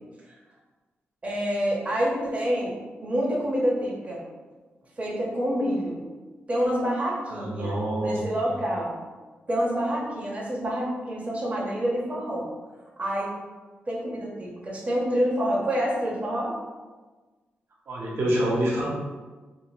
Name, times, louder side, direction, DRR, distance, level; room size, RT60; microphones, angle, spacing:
voice 1, 1.2-4.2 5.0-6.0 6.5-9.0 9.5-12.5 13.0-13.3 13.9-16.6, equal, 30° right, -4 dB, 0.7 m, -27 dB
voice 2, 7.3-8.6 17.9-18.9, right 1 dB, 65° right, -4 dB, 0.8 m, -27 dB
2.6 x 2.4 x 3.0 m, 1.3 s
cardioid pair, 80°, 4 cm